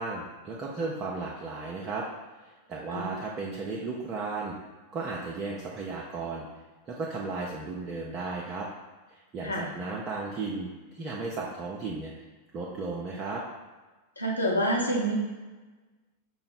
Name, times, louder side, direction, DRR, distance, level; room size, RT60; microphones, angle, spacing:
voice 1, 0.0-2.1 2.4-4.6 4.9-6.5 6.9-8.7 9.1-12.1 12.5-13.4, right 3 dB, 30° right, -4 dB, 0.6 m, -35 dB
voice 2, 14.2-15.1, equal, 80° left, -2 dB, 0.8 m, -27 dB
5.7 x 2.1 x 4.1 m, 1.2 s
figure-of-eight pair, 90°, 0 cm